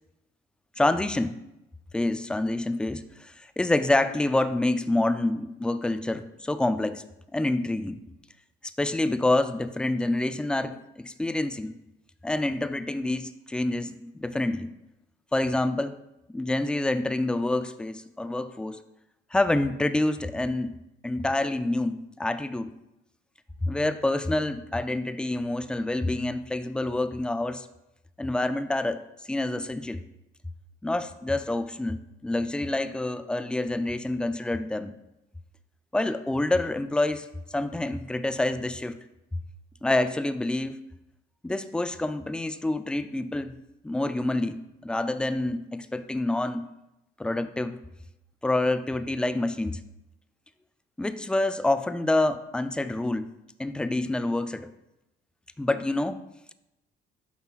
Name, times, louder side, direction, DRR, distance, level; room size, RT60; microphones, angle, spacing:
voice 1, 0.8-1.4 1.9-7.0 7.3-8.0 8.8-11.7 12.2-14.7 15.3-16.0 16.3-18.8 19.3-20.7 21.0-22.7 23.6-27.7 28.2-29.0 29.3-30.0 30.8-34.9 35.9-39.0 39.8-40.8 41.4-43.6 43.8-46.7 47.2-47.8 48.4-49.8 51.0-53.3 53.6-54.7 55.6-56.2, left 2 dB, 5° left, 10 dB, 0.4 m, -27 dB
9.5 x 5.6 x 2.4 m, 0.90 s
cardioid pair, 110°, 17 cm